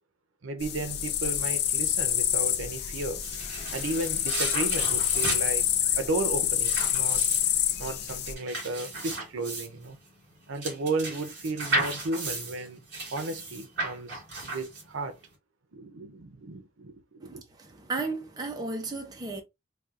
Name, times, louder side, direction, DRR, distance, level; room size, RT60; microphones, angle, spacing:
voice 1, 0.4-3.2 3.7-5.7 6.0-7.2 7.8-10.0 10.5-12.8 13.1-15.2 15.7-17.4, right 2 dB, 85° right, 0.6 m, -34 dB
sound 1, 0.6-8.3, left 10 dB, 55° left, 0.4 m, -27 dB
sound 2, 3.0-15.1, right 2 dB, 55° right, 2.2 m, -35 dB
voice 2, 17.2-19.4, right 3 dB, 20° right, 0.5 m, -34 dB
4.2 x 2.3 x 2.4 m
head